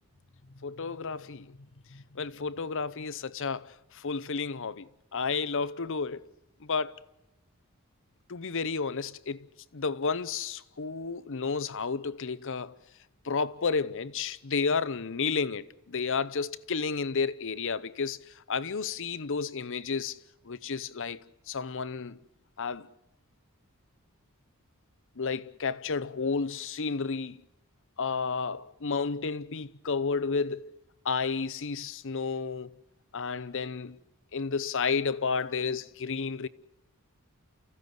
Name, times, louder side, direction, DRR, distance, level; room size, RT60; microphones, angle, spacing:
voice 1, 0.6-1.6 1.9-6.3 6.6-6.9 8.3-9.5 9.7-12.7 13.2-20.2 20.4-22.2 22.6-22.9 25.2-27.4 28.0-30.8 31.0-32.8 33.1-34.0 34.3-36.5, left 5 dB, 60° left, 0.8 m, -32 dB
29.5 x 15.5 x 7.9 m
head